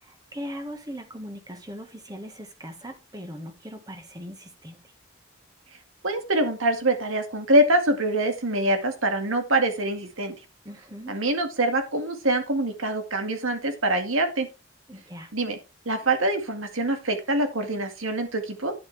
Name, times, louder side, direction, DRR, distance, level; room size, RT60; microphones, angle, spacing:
voice 1, 0.0-4.8 10.6-11.2 14.9-15.3, equal, 20° right, 1.6 m, -39 dB
voice 2, 6.0-10.3 11.1-14.5 15.3-15.6 15.9-18.7, right 1 dB, 80° right, 2.1 m, -24 dB
10.5 x 7.8 x 3.5 m
head